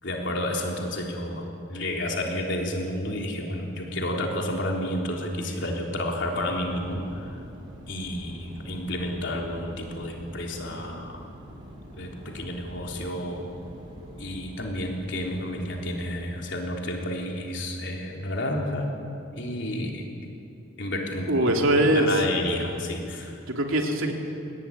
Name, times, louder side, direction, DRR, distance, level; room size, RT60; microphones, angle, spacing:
voice 1, 0.0-7.4 7.9-11.2 11.9-13.4 14.2-18.9 19.3-20.0 20.8-21.6 21.9-23.4, left 1 dB, 55° left, 0 dB, 3.7 m, -31 dB
sound 1, 6.3-17.3, equal, 20° right, 5.3 m, -45 dB
voice 2, 21.3-22.2 23.5-24.1, right 1 dB, 75° right, 2 dB, 3.1 m, -22 dB
23.0 x 18.0 x 10.0 m, 2.7 s
head